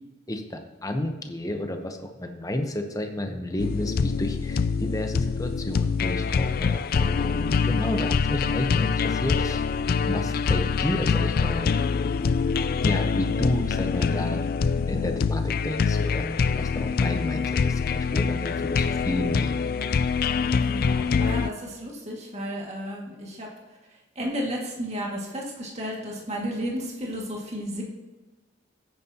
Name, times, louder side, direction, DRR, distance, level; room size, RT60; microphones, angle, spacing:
voice 1, 0.3-9.7 10.0-11.8 12.8-14.4 14.9-19.7, left 1 dB, 20° left, 5 dB, 0.9 m, -31 dB
sound 1, 3.6-21.5, left 5 dB, 50° left, 0.4 m, -25 dB
voice 2, 20.6-23.5 24.2-27.8, equal, 35° right, -2 dB, 2.2 m, -33 dB
15.0 x 9.1 x 2.9 m, 1.2 s
head